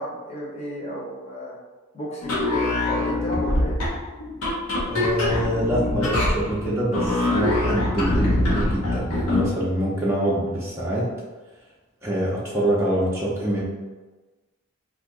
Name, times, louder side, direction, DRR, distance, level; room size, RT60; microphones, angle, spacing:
voice 1, 0.0-1.6 1.9-3.8, equal, 30° left, -4 dB, 0.8 m, -33 dB
sound 1, 2.2-9.5, left 2 dB, 85° left, 0.9 m, -24 dB
voice 2, 4.9-11.1 12.0-13.6, right 1 dB, 10° right, -7 dB, 0.5 m, -25 dB
2.7 x 2.6 x 3.6 m, 1.2 s
head